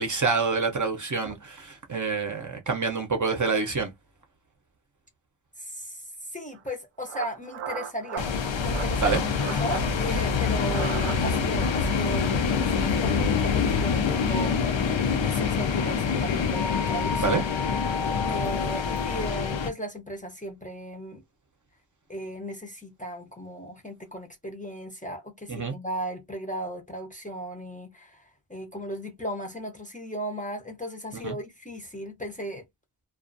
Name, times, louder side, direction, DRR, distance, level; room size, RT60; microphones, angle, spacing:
voice 1, 0.0-3.9 9.0-9.2 17.2-17.4 25.5-25.7 31.2-31.4, right 4 dB, 40° right, 0.7 m, -27 dB
voice 2, 5.6-5.9 6.3-14.6 15.2-17.4 18.3-21.2 22.1-32.6, equal, 15° left, 0.6 m, -36 dB
sound 1, 6.5-6.7 7.0-8.3 8.6-9.0 9.3-9.9 10.6-11.5, right 9 dB, 80° right, 0.6 m, -36 dB
sound 2, 8.2-19.7, left 5 dB, 65° left, 0.6 m, -25 dB
2.4 x 2.4 x 2.5 m
wide cardioid pair, 70°, 49 cm